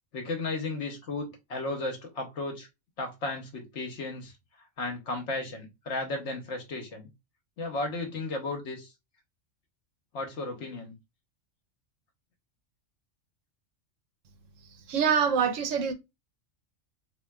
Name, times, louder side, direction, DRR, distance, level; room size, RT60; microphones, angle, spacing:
voice 1, 0.1-2.7 3.0-7.1 7.6-8.9 10.1-10.9, left 2 dB, 70° left, 1.0 m, -34 dB
voice 2, 14.9-15.9, right 6 dB, 85° right, 1.0 m, -25 dB
3.6 x 2.5 x 2.2 m
omnidirectional pair, 1.3 m